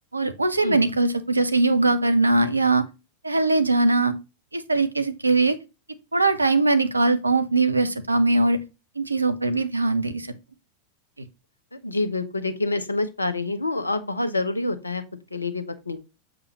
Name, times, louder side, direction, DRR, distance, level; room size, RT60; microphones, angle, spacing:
voice 1, 0.1-2.8 3.2-4.1 4.5-5.6 6.1-8.6 9.0-10.3, right 2 dB, 80° right, 10 dB, 0.7 m, -21 dB
voice 2, 11.7-15.0 15.3-16.0, left 2 dB, 80° left, 11 dB, 0.8 m, -27 dB
7.1 x 5.0 x 2.9 m, 0.27 s
figure-of-eight pair, 90°, 0 cm